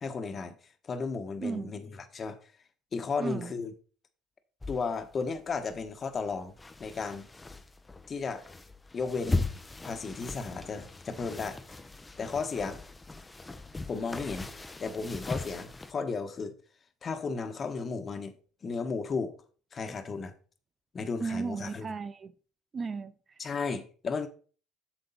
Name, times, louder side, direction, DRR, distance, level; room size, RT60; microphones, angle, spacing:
voice 1, 0.0-0.5 0.8-2.4 2.9-3.7 4.7-6.5 6.8-7.3 8.1-8.4 8.9-9.5 9.8-11.6 12.2-12.8 13.9-14.5 14.8-16.5 17.0-18.3 18.6-19.3 19.7-20.3 20.9-21.9 23.4-24.3, left 4 dB, 35° left, 1.4 m, -34 dB
voice 2, 1.4-1.7 3.2-3.5 21.2-22.3 22.7-23.4, right 4 dB, 30° right, 0.5 m, -35 dB
sound 1, 4.6-15.9, left 2 dB, 15° left, 0.9 m, -39 dB
8.0 x 6.9 x 4.1 m
supercardioid pair, 80°, 0 cm